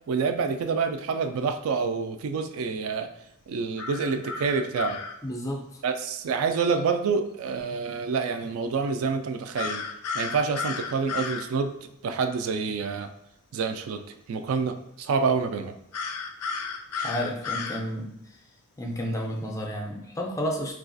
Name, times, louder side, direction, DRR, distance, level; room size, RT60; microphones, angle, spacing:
voice 1, 0.1-3.1 3.5-5.0 5.8-9.8 10.1-11.7 12.0-13.1 13.5-14.0 14.3-15.7, right 5 dB, 65° right, 9 dB, 0.3 m, -27 dB
sound 1, 3.8-5.1 9.6-11.5 15.9-17.8, left 5 dB, 90° left, 0.4 m, -33 dB
voice 2, 5.2-5.6 17.0-18.1 18.8-20.7, equal, 15° left, 0 dB, 0.4 m, -31 dB
3.9 x 2.3 x 2.5 m, 0.81 s
head